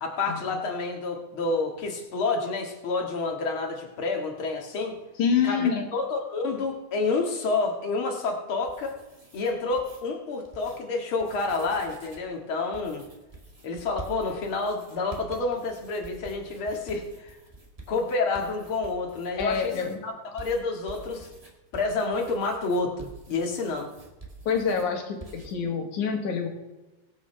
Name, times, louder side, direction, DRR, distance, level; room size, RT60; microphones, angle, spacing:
voice 1, 0.0-5.0 5.4-9.0 9.3-13.0 13.6-17.3 17.9-19.7 20.0-21.3 21.7-23.9, left 3 dB, 45° left, 1 dB, 2.5 m, -29 dB
voice 2, 5.2-5.9 19.4-20.0 24.5-26.5, left 6 dB, 80° left, 3 dB, 3.1 m, -26 dB
sound 1, 8.5-10.0 10.4-10.8 11.1-12.3 12.7-20.0 20.4-24.9 25.2-25.5, right 2 dB, 15° right, 1.4 m, -47 dB
23.5 x 8.2 x 3.4 m, 1.1 s
omnidirectional pair, 3.4 m